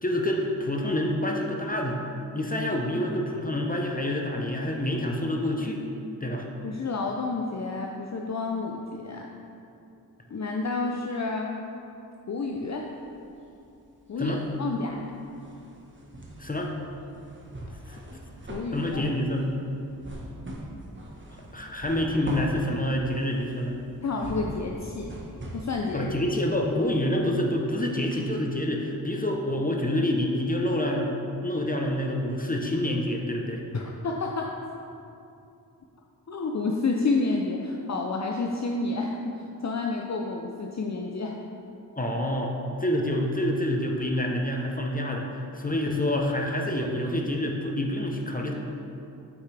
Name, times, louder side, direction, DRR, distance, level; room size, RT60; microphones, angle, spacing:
voice 1, 0.0-2.0 2.3-5.8 6.2-6.5 14.2-14.4 16.4-16.7 17.9-18.0 18.7-19.5 21.5-23.8 25.9-33.6 41.9-45.3 45.5-48.5, left 1 dB, 20° left, 1 dB, 0.8 m, -27 dB
voice 2, 6.6-9.3 10.3-11.6 12.3-12.9 14.1-15.0 18.5-19.0 24.0-25.1 25.5-26.1 33.7-34.5 36.3-41.4, left 3 dB, 45° left, 1 dB, 0.6 m, -30 dB
sound 1, 12.5-13.6 13.9-27.7 28.1-28.2, right 1 dB, 30° right, 1.4 m, -41 dB
8.2 x 5.7 x 3.3 m, 2.7 s
cardioid pair, 55°, 38 cm